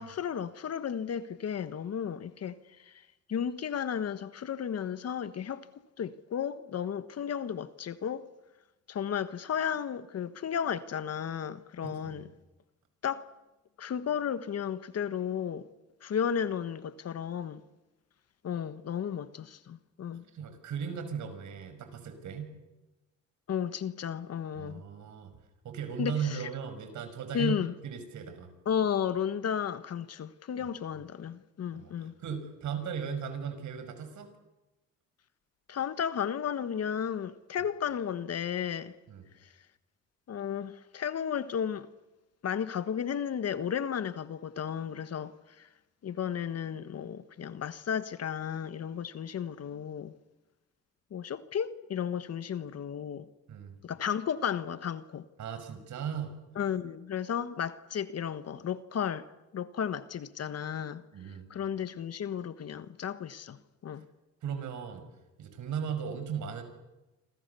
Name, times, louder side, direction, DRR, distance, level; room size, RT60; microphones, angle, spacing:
voice 1, 0.0-2.6 2.9-3.0 3.3-5.7 6.0-8.2 8.9-12.3 13.0-13.2 13.8-15.6 16.0-17.6 18.4-20.2 23.5-24.8 26.0-26.5 27.3-27.7 28.6-32.1 35.7-38.9 40.3-41.9 42.4-45.7 46.0-50.1 51.1-53.3 53.8-55.2 56.6-59.3 59.5-61.0 61.5-64.0, left 8 dB, 55° left, 1.4 m, -33 dB
voice 2, 11.8-12.3 20.3-22.5 24.6-25.3 25.6-28.5 30.6-30.7 31.7-31.9 32.2-34.3 39.1-39.2 53.5-53.7 55.4-56.4 61.1-61.5 64.4-65.1 65.4-66.6, right 7 dB, 70° right, 5.8 m, -37 dB
27.5 x 25.5 x 7.0 m
cardioid pair, 90°, 30 cm